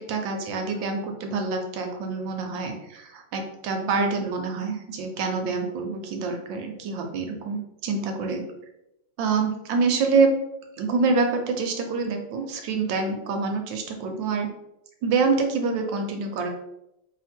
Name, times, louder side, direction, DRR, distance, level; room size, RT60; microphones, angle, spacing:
voice 1, 0.0-8.4 9.2-10.3 10.8-14.5 15.0-16.5, right 4 dB, 75° right, 4 dB, 1.2 m, -26 dB
3.0 x 2.8 x 4.2 m, 0.86 s
omnidirectional pair, 2.3 m